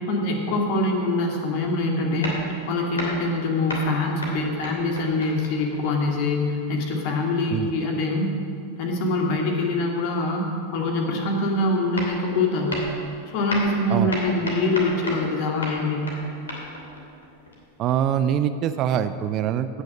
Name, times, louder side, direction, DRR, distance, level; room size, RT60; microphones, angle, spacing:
voice 1, 0.1-2.4 2.7-8.3 8.8-12.8 13.3-16.1, left 2 dB, 45° left, 1 dB, 2.2 m, -24 dB
sound 1, 1.5-1.7 2.2-3.4 3.7-6.0 11.5-11.6 12.0-12.4 12.7-13.1 13.5-15.3 15.6-18.0, left 1 dB, 70° left, 2.8 m, -34 dB
voice 2, 17.8-19.8, right 9 dB, 35° right, 11 dB, 0.5 m, -24 dB
17.5 x 6.5 x 6.4 m, 2.4 s
figure-of-eight pair, 90°, 0 cm